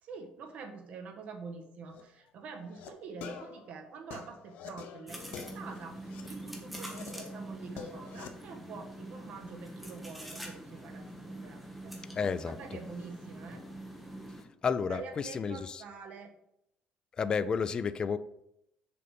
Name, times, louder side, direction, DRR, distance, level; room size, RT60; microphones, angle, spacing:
voice 1, 0.0-12.0 12.4-13.6 14.9-16.3, right 4 dB, 60° right, 4 dB, 1.4 m, -46 dB
sound 1, 1.8-2.0 2.5-2.9 3.2-6.3 6.7-8.3, left 7 dB, 80° left, 0.9 m, -47 dB
sound 2, 5.1-14.4, right 1 dB, 5° right, 1.3 m, -45 dB
voice 2, 12.2-12.6 14.6-15.8 17.2-18.2, left 6 dB, 30° left, 13 dB, 0.4 m, -31 dB
6.8 x 5.1 x 5.2 m, 0.79 s
cardioid pair, 135°, 3 cm